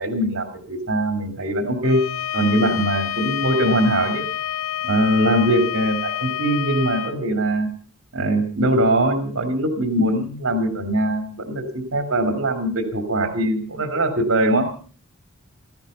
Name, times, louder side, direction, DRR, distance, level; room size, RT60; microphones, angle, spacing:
voice 1, 0.0-2.0 2.3-4.2 4.8-7.7 8.1-14.7, right 1 dB, 70° right, 5 dB, 2.7 m, -21 dB
Bowed string instrument, 1.8-7.2, left 10 dB, 85° left, 1.0 m, -28 dB
17.0 x 14.5 x 5.5 m, 0.42 s
head